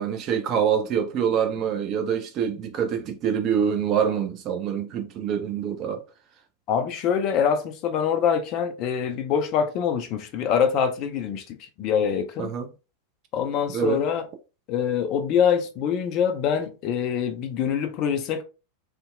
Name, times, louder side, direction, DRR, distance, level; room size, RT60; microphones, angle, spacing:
voice 1, 0.0-6.0 12.4-12.7 13.7-14.0, right 8 dB, 35° right, 0.5 m, -25 dB
voice 2, 6.7-12.5 13.3-14.2 14.7-18.4, left 7 dB, 40° left, 0.4 m, -24 dB
2.6 x 2.1 x 2.5 m
figure-of-eight pair, 90°, 0 cm